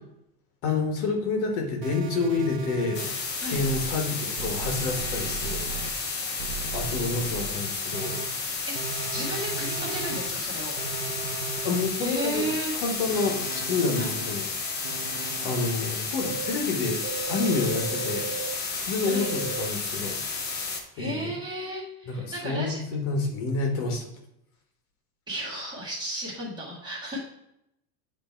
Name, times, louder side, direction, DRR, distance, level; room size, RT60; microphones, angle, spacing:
voice 1, 0.6-6.1 6.7-8.2 11.6-12.4 12.7-14.4 15.4-17.0 17.3-18.3 18.7-20.7 21.0-21.3 22.1-24.1, left 3 dB, 65° left, 2 dB, 1.6 m, -29 dB
sound 1, 1.8-3.0 3.5-3.9 4.4-5.9 6.4-7.4 7.9-8.2 8.7-10.3 10.8-11.8 12.3-12.6 13.1-14.3 14.8-15.7 16.2-16.5 17.0-18.5 19.0-19.7, right 6 dB, 60° right, 0.8 m, -36 dB
sound 2, 2.9-20.8, left 4 dB, 25° left, 0.7 m, -32 dB
voice 2, 8.7-10.7 12.0-12.8 13.9-14.2 19.0-19.4 21.0-22.8 25.3-27.2, equal, 10° right, -8 dB, 1.9 m, -34 dB
8.4 x 3.3 x 4.5 m, 0.80 s
cardioid pair, 165°, 47 cm